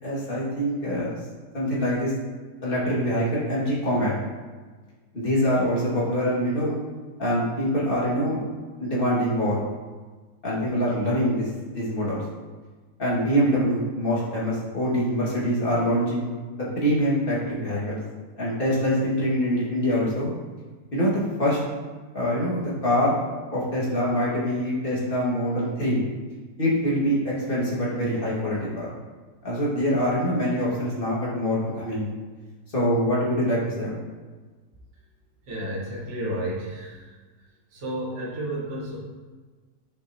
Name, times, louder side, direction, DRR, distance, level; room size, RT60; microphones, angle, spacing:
voice 1, 0.0-1.2 1.5-2.1 2.6-4.1 5.1-6.7 7.2-8.4 8.8-9.6 10.4-12.2 13.0-16.3 16.8-18.0 18.4-20.3 20.9-21.6 22.1-23.2 23.5-26.0 26.6-28.9 29.4-32.1 32.7-33.9, equal, 30° left, -7 dB, 2.1 m, -24 dB
voice 2, 35.4-37.2 37.7-39.0, right 1 dB, 45° right, -5 dB, 1.7 m, -32 dB
8.1 x 6.4 x 2.8 m, 1.4 s
omnidirectional pair, 1.9 m